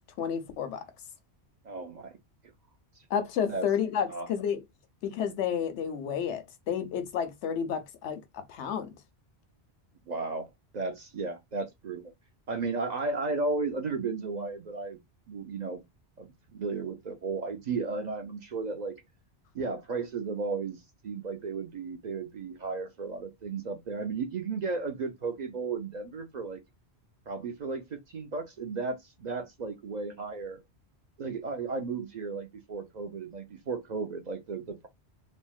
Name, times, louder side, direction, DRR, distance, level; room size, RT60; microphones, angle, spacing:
voice 1, 0.2-0.8 3.1-4.6 5.0-8.9, left 8 dB, 90° left, 1.0 m, -31 dB
voice 2, 1.6-2.1 3.5-3.7 4.1-4.3 10.1-12.0 12.5-15.0 15.3-15.8 16.2-19.0 19.5-26.6 27.3-30.6 31.2-34.9, right 4 dB, 55° right, 0.5 m, -34 dB
3.4 x 2.1 x 2.4 m
omnidirectional pair, 1.2 m